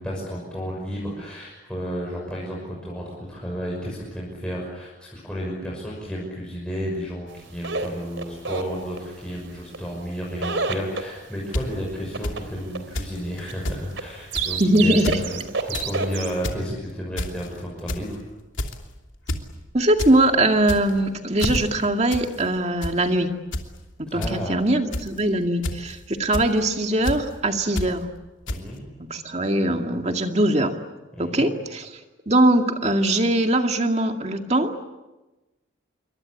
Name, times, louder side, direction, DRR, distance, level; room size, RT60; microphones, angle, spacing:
voice 1, 0.0-18.2 24.1-24.6 28.5-28.8 31.1-31.5, equal, 5° left, -4 dB, 6.2 m, -32 dB
sound 1, 7.4-16.4, right 4 dB, 75° right, 3.6 m, -30 dB
sound 2, 11.5-11.6 12.2-12.3 12.9-13.1 13.4-13.8 14.3-14.6 14.9-15.2 15.6-15.9 16.3-16.6 17.2-17.5 17.9-18.1 18.6-18.8 19.3-19.4 19.7-20.1 20.6-21.0 21.4-21.6 22.1-22.3 22.6-22.9 23.5-23.7 24.2-24.3 24.9-25.2 25.6-25.9 26.3-26.5 27.0-27.2 27.8-27.9 28.5-28.6, left 1 dB, 75° left, 2.9 m, -28 dB
voice 2, 14.6-15.2 19.7-23.3 24.1-28.1 29.0-30.7 31.2-31.9 32.3-34.7, right 1 dB, 35° right, 4 dB, 2.2 m, -21 dB
27.5 x 24.0 x 8.5 m, 1.1 s
head